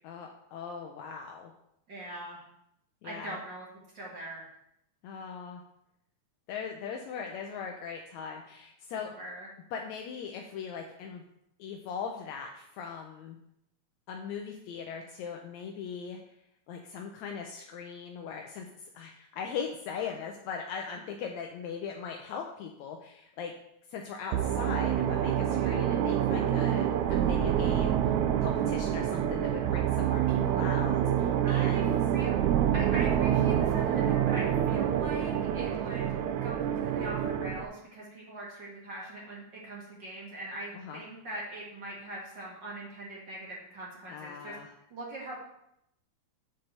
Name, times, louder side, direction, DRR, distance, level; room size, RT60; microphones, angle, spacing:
voice 1, 0.0-1.5 3.0-3.4 5.0-5.6 6.5-9.1 9.7-11.2 11.6-13.4 14.1-16.2 16.7-23.5 23.9-32.0 40.7-41.0 44.1-44.7, left 6 dB, 80° left, 2 dB, 1.9 m, -40 dB
voice 2, 1.9-2.4 3.0-3.7 3.9-4.5 9.1-9.5 25.5-25.9 31.4-44.5 44.9-45.4, right 1 dB, 40° right, -5 dB, 2.3 m, -42 dB
sound 1, 24.3-37.7, right 10 dB, 80° right, 1.9 m, -27 dB
7.8 x 4.3 x 6.5 m, 0.79 s
omnidirectional pair, 3.4 m